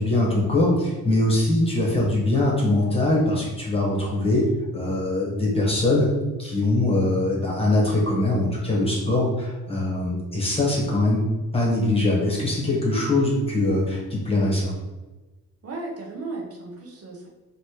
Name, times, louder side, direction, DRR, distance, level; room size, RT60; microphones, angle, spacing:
voice 1, 0.0-4.5 4.7-6.1 6.4-11.2 11.5-14.7, left 2 dB, 15° left, -4 dB, 1.3 m, -22 dB
voice 2, 15.6-17.3, right 3 dB, 45° right, -1 dB, 0.9 m, -35 dB
3.3 x 3.0 x 4.4 m, 1.2 s
cardioid pair, 125°, 34 cm